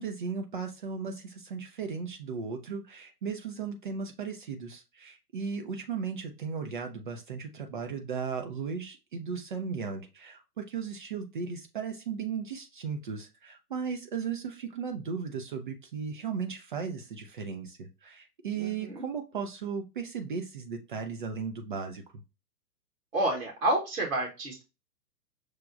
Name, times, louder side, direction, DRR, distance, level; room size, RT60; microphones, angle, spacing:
voice 1, 0.0-22.0, right 6 dB, 35° right, 4 dB, 0.5 m, -36 dB
voice 2, 18.6-19.0 23.1-24.6, right 1 dB, 60° right, -2 dB, 1.2 m, -29 dB
6.2 x 2.2 x 2.4 m, 0.27 s
figure-of-eight pair, 115°, 46 cm